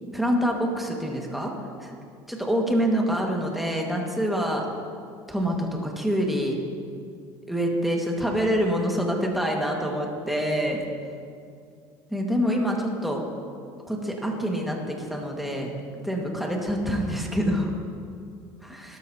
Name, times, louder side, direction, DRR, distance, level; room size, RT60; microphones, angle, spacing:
voice 1, 0.1-1.5 1.8-1.9 2.3-4.7 5.3-6.6 7.5-10.8 12.1-13.2 13.9-15.7 16.0-17.7, equal, ahead, -1 dB, 1.9 m, -26 dB
17.5 x 12.5 x 2.9 m, 2.3 s
cardioid pair, 120°, 9 cm